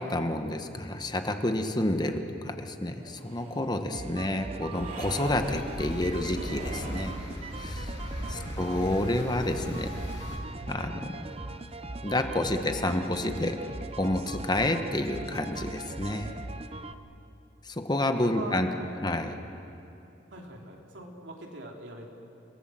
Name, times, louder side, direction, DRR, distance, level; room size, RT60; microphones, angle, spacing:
voice 1, 0.0-7.1 7.6-7.9 8.3-9.9 10.7-11.2 12.0-13.6 14.0-16.3 17.7-18.7 19.0-19.4, left 1 dB, 25° left, 6 dB, 1.2 m, -29 dB
sound 1, 2.9-3.8 4.7-5.4 6.3-7.2 8.5-9.3, right 2 dB, 50° right, 4.3 m, -45 dB
sound 2, 3.9-16.9, right 2 dB, 35° right, 0.8 m, -40 dB
sound 3, 5.2-10.4, equal, 75° left, 7.2 m, -38 dB
voice 2, 8.2-8.6 18.1-19.1 20.3-22.1, right 1 dB, 85° right, 0 dB, 3.2 m, -42 dB
30.0 x 18.5 x 7.7 m, 2.8 s
head